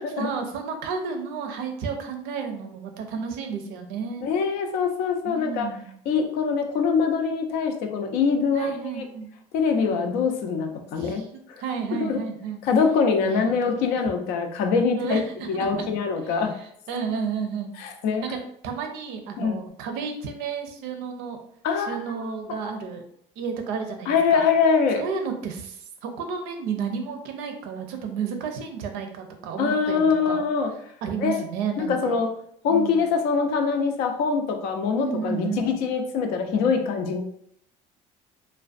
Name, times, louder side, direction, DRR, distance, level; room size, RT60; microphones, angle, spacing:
voice 1, 0.2-4.3 5.2-5.9 8.5-9.3 9.7-10.0 11.0-11.2 11.6-12.6 13.2-14.0 15.0-15.2 15.5-15.7 16.2-17.7 18.2-21.4 21.8-23.0 23.4-24.4 25.0-30.4 31.0-32.2 32.7-33.0 35.0-35.7, right 6 dB, 80° right, 5 dB, 0.5 m, -32 dB
voice 2, 4.2-5.7 6.1-9.1 9.5-11.6 12.0-12.2 12.6-15.2 15.5-16.5 17.8-18.3 19.4-19.6 21.6-22.3 24.1-25.0 29.6-30.7 31.2-31.4 31.8-32.3 32.6-37.2, left 5 dB, 75° left, 5 dB, 0.5 m, -24 dB
2.4 x 2.1 x 2.4 m, 0.68 s
supercardioid pair, 90°, 16 cm